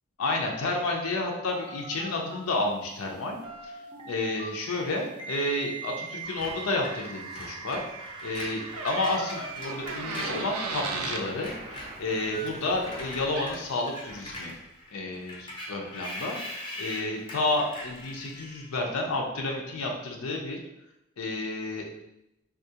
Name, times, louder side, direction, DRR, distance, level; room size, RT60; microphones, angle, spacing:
voice 1, 0.2-3.4 3.6-3.8 4.0-7.8 8.2-14.5 14.9-20.6 21.2-21.9, left 2 dB, 80° left, 1 dB, 0.5 m, -31 dB
sound 1, 1.5-2.4 3.1-4.5 5.2-9.0 9.3-13.3, right 4 dB, 25° right, 0.5 m, -42 dB
Screech, 6.4-11.1 11.3-18.8, left 1 dB, 25° left, 0.5 m, -42 dB
Door, 8.7-11.3 13.1-13.2 13.3-13.7, right 4 dB, 90° right, 0.4 m, -34 dB
3.6 x 2.3 x 2.7 m, 0.86 s
head